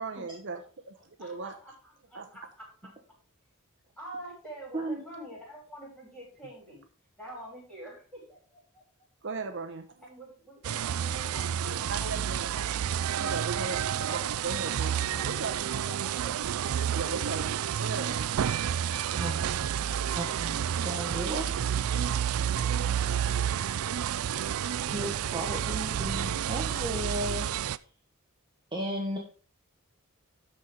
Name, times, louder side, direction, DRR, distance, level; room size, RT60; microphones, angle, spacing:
voice 1, 0.0-1.5 2.1-2.3 9.2-10.1 11.9-12.5 13.2-15.7 16.9-18.3, right 4 dB, 60° right, 6 dB, 0.9 m, -37 dB
voice 2, 1.2-2.7 4.0-6.9 7.2-8.8 10.0-12.3 12.5-12.9 14.1-14.3 14.8-16.3, right 1 dB, 5° left, -4 dB, 5.9 m, -46 dB
sound 1, 10.6-27.8, right 9 dB, 80° right, 0.4 m, -30 dB
voice 3, 18.9-19.7 20.1-22.0 22.6-23.5 24.9-27.5 28.7-29.2, right 1 dB, 20° right, -1 dB, 1.3 m, -36 dB
12.5 x 4.4 x 5.0 m, 0.40 s
head